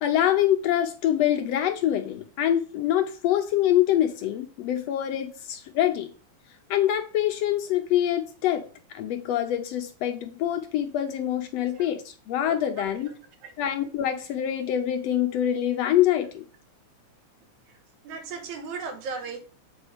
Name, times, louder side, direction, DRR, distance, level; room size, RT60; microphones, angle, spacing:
voice 1, 0.0-6.1 6.7-8.7 8.9-13.1 13.6-16.5, left 11 dB, 75° left, 6 dB, 1.7 m, -25 dB
voice 2, 18.0-19.4, right 5 dB, 80° right, 5 dB, 2.6 m, -36 dB
7.7 x 4.1 x 4.9 m, 0.37 s
omnidirectional pair, 3.3 m